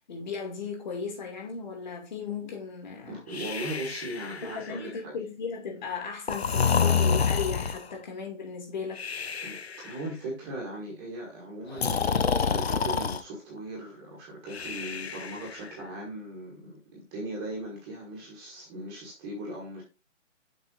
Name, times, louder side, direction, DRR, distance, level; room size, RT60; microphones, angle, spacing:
voice 1, 0.1-3.2 4.4-9.1, left 5 dB, 35° left, 2.6 m, -36 dB
voice 2, 3.0-5.2 6.4-6.5 9.4-9.6 9.8-19.8, right 1 dB, 10° right, 1.4 m, -38 dB
Breathing, 3.3-4.9 6.3-7.9 9.0-9.9 11.7-13.2 14.5-15.7, left 6 dB, 55° left, 0.8 m, -28 dB
7.0 x 5.9 x 3.7 m
figure-of-eight pair, 160°, 39 cm